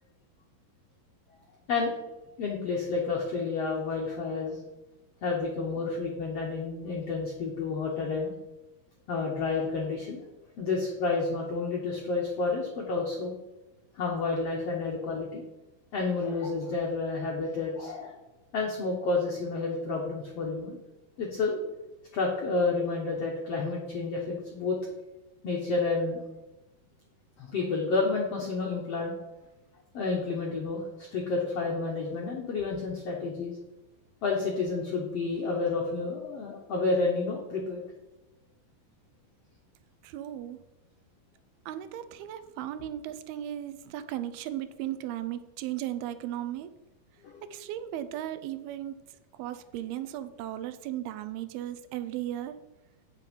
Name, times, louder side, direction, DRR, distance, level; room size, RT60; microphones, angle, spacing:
voice 1, 2.4-4.6 5.2-8.3 9.1-10.2 10.6-13.3 13.9-15.4 15.9-18.1 18.5-20.8 21.2-21.6 22.1-24.8 25.4-26.2 27.4-29.1 29.9-33.6 34.2-37.8 47.2-47.5, left 3 dB, 75° left, -1 dB, 1.4 m, -30 dB
voice 2, 40.0-40.6 41.7-46.7 47.4-49.0 49.3-52.5, right 12 dB, 80° right, 12 dB, 2.4 m, -36 dB
9.1 x 6.4 x 5.2 m, 1.0 s
omnidirectional pair, 4.5 m